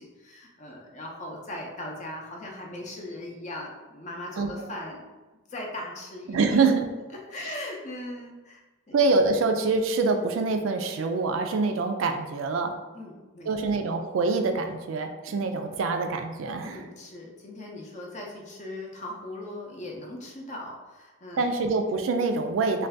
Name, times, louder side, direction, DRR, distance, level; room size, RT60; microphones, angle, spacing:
voice 1, 0.0-5.1 5.5-6.6 7.3-9.0 12.9-13.5 16.6-21.5, left 1 dB, 35° left, -1 dB, 0.5 m, -39 dB
voice 2, 4.4-4.7 6.3-6.9 8.9-12.7 13.5-16.8 21.4-22.9, right 3 dB, 75° right, 6 dB, 0.3 m, -25 dB
2.6 x 2.3 x 3.3 m, 1.2 s
head